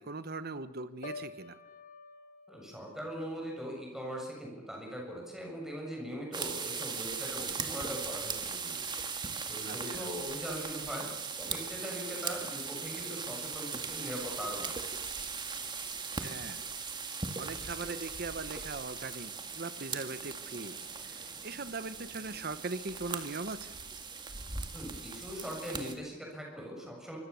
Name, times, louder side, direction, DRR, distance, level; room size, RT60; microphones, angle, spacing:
voice 1, 0.0-1.6 9.6-10.1 16.2-16.6 17.3-23.8, right 3 dB, 50° right, 13 dB, 1.1 m, -40 dB
Piano, 1.0-5.0 5.4-5.8, left 3 dB, 40° left, 2.0 m, -50 dB
voice 2, 2.5-8.8 9.5-11.1 11.4-14.8 24.7-27.2, equal, ahead, -1 dB, 7.3 m, -41 dB
sound 1, 6.3-26.0, right 5 dB, 25° right, 2.0 m, -39 dB
25.0 x 24.5 x 7.1 m, 1.1 s
head